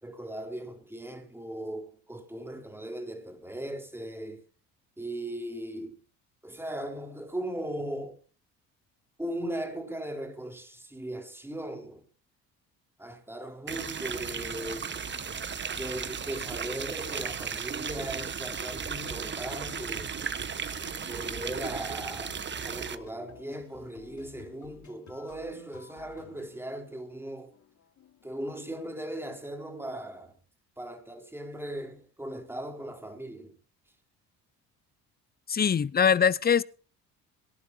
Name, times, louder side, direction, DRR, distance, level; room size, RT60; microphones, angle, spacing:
voice 1, 0.0-4.4 5.0-6.0 6.4-8.2 9.2-12.1 13.0-15.0 15.7-20.1 21.1-22.4 22.7-27.5 28.2-30.4 30.8-33.5, right 1 dB, 5° right, 3.9 m, -38 dB
sound 1, 13.7-23.0, right 6 dB, 30° right, 1.3 m, -35 dB
sound 2, 14.2-29.5, left 8 dB, 55° left, 3.1 m, -54 dB
voice 2, 35.5-36.6, left 7 dB, 25° left, 0.7 m, -22 dB
23.5 x 11.0 x 2.8 m
cardioid pair, 95°, 35 cm